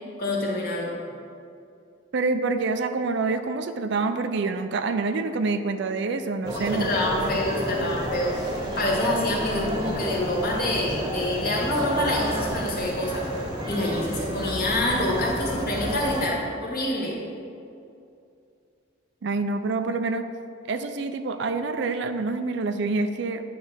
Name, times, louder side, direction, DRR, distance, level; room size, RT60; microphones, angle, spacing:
voice 1, 0.2-1.0 6.5-8.4 8.8-13.2 13.6-17.2, left 1 dB, 50° left, -3 dB, 1.6 m, -26 dB
voice 2, 2.1-7.3 19.2-20.3 20.7-23.4, right 3 dB, 60° right, 9 dB, 0.4 m, -27 dB
sound 1, 6.4-16.3, equal, 20° right, 1.0 m, -30 dB
9.5 x 3.3 x 6.3 m, 2.5 s
head